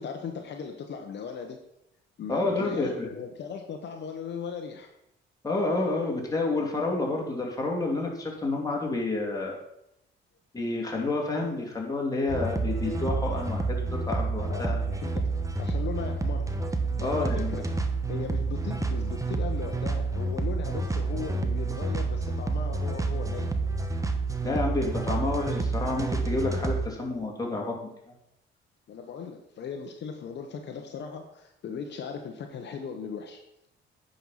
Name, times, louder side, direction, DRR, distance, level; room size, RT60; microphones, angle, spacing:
voice 1, 0.0-1.6 2.2-4.9 14.5-15.3 15.6-16.5 17.0-17.7 18.1-23.5 28.9-33.4, left 6 dB, 60° left, 4 dB, 1.1 m, -38 dB
voice 2, 2.3-3.1 5.4-9.6 10.5-14.8 17.0-17.6 24.4-27.8 28.1-28.2, left 2 dB, 20° left, -1 dB, 2.9 m, -29 dB
sound 1, 12.3-26.9, right 3 dB, 15° right, 1.1 m, -29 dB
9.3 x 5.5 x 5.7 m, 0.82 s
cardioid pair, 90°, 20 cm